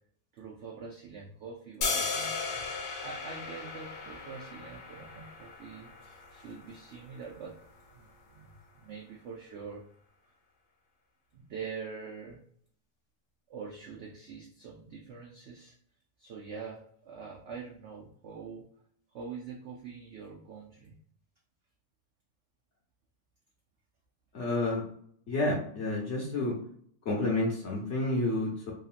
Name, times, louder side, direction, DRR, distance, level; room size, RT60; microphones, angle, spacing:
voice 1, 0.3-2.7 3.0-7.6 8.0-8.5 8.7-9.8 11.3-12.4 13.5-15.7 16.2-18.7 19.1-21.0, right 5 dB, 75° right, -2 dB, 0.6 m, -44 dB
sound 1, 1.8-7.9, left 4 dB, 75° left, 1.1 m, -37 dB
voice 2, 24.3-24.8 25.3-26.5 27.0-28.7, left 2 dB, 55° left, -3 dB, 0.9 m, -29 dB
2.9 x 2.7 x 2.4 m, 0.63 s
omnidirectional pair, 1.7 m